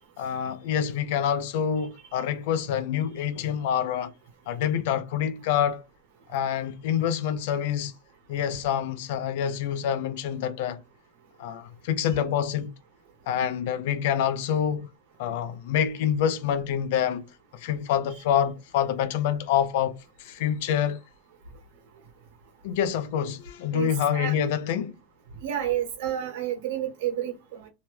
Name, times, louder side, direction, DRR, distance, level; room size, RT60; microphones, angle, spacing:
voice 1, 0.2-4.1 4.5-5.8 6.3-7.9 8.3-10.8 11.4-12.7 13.3-14.9 15.2-21.0 22.6-24.9, left 9 dB, 65° left, 0.5 m, -27 dB
voice 2, 23.7-24.3 25.4-27.7, right 10 dB, 75° right, 1.2 m, -30 dB
2.8 x 2.2 x 3.2 m
supercardioid pair, 160°, 0 cm